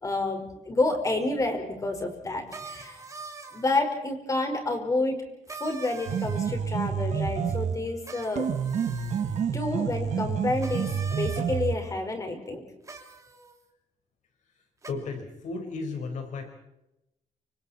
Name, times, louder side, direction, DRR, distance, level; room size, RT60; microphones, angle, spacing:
voice 1, 0.0-3.0 3.5-5.2 5.6-8.5 9.5-12.6, left 2 dB, 25° left, 4 dB, 5.1 m, -29 dB
sound 1, 2.5-3.8 5.5-6.7 8.0-9.5 10.6-11.5 12.8-13.5 14.8-14.9, right 4 dB, 25° right, 3.1 m, -43 dB
sound 2, 6.1-7.9 8.4-11.9, right 7 dB, 65° right, 1.8 m, -29 dB
voice 2, 14.9-16.5, left 4 dB, 75° left, 5 dB, 5.0 m, -34 dB
29.5 x 26.5 x 4.4 m, 0.90 s
cardioid pair, 135°, 13 cm